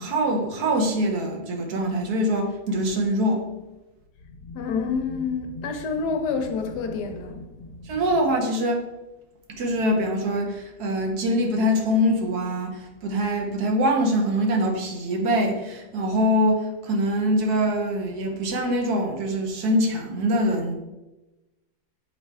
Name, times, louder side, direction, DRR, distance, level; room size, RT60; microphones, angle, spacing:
voice 1, 0.0-3.5 7.8-8.8 9.5-20.7, equal, 75° right, 1.5 m, -24 dB
voice 2, 4.4-7.9, left 5 dB, 85° left, 1.4 m, -28 dB
7.0 x 4.4 x 3.4 m
omnidirectional pair, 1.7 m